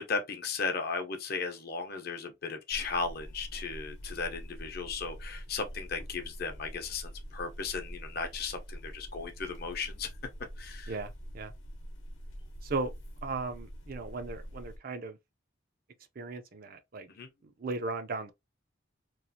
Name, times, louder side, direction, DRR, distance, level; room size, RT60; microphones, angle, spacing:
voice 1, 0.0-10.1 10.6-10.9 17.1-17.3, left 4 dB, 50° left, 0.7 m, -36 dB
sound 1, 2.7-14.8, equal, 75° left, 0.8 m, -45 dB
voice 2, 10.9-11.5 12.6-12.9 13.2-15.2 16.2-17.1 17.4-18.3, right 3 dB, 50° right, 0.5 m, -36 dB
3.1 x 2.4 x 2.6 m
head